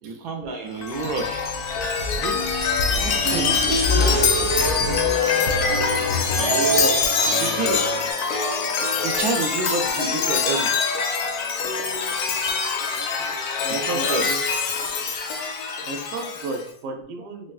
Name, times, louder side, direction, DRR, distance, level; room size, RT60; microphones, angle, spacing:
voice 1, 0.0-1.5 2.2-2.5 3.0-4.5 7.4-7.8 9.0-10.7 13.7-14.3 16.9-17.0, right 3 dB, 85° right, 4 dB, 1.1 m, -29 dB
Chime, 0.7-16.6, left 5 dB, 80° left, 1.0 m, -24 dB
sound 1, 0.9-5.9, equal, 55° left, 1.0 m, -33 dB
sound 2, 2.9-8.1, right 1 dB, 10° left, 0.5 m, -27 dB
voice 2, 6.4-7.1 13.6-14.4 15.9-17.5, right 3 dB, 65° right, 2 dB, 0.8 m, -32 dB
3.3 x 3.0 x 2.3 m, 0.62 s
omnidirectional pair, 1.6 m